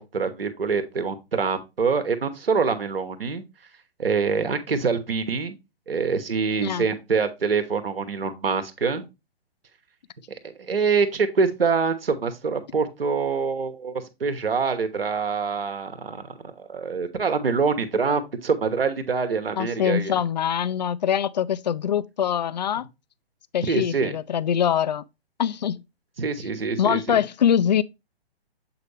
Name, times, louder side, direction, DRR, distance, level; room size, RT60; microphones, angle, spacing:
voice 1, 0.0-3.4 4.0-5.6 5.9-9.0 10.6-20.1 23.6-24.1 26.2-27.0, right 5 dB, 65° right, 1.1 m, -25 dB
voice 2, 19.6-22.8 23.5-25.0 25.4-25.8 26.8-27.8, left 9 dB, 45° left, 0.4 m, -23 dB
7.7 x 4.3 x 3.3 m
figure-of-eight pair, 125°, 31 cm